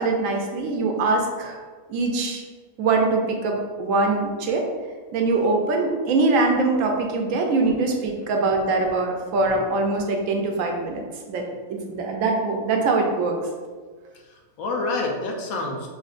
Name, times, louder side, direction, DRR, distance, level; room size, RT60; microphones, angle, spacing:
voice 1, 0.0-1.6 1.9-2.4 2.8-4.6 5.1-11.0 11.3-11.4 11.7-13.4, right 3 dB, 75° right, 2 dB, 1.0 m, -23 dB
voice 2, 8.5-9.1 14.3-15.9, left 3 dB, 90° left, 0 dB, 1.1 m, -29 dB
5.5 x 2.6 x 2.4 m, 1.5 s
omnidirectional pair, 1.4 m